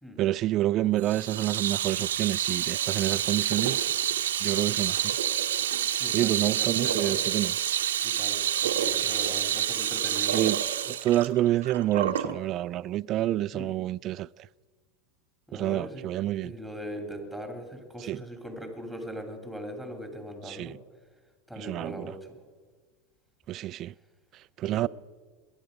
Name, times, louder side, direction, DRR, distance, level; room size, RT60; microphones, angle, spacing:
voice 1, 0.2-3.9 4.4-5.2 6.1-7.5 10.3-14.5 15.5-16.5 18.0-18.2 20.5-20.8 21.6-22.1 23.5-23.9 24.3-24.9, right 14 dB, 45° right, 0.3 m, -28 dB
Water tap faucet / Sink (filling or washing), 1.0-12.4, right 10 dB, 90° right, 0.8 m, -28 dB
voice 2, 5.9-7.2 8.0-10.4 13.5-13.7 15.5-16.1 16.4-20.8 21.5-22.4 24.6-24.9, equal, 5° left, 2.7 m, -40 dB
21.5 x 9.9 x 5.2 m
hypercardioid pair, 100°, 0 cm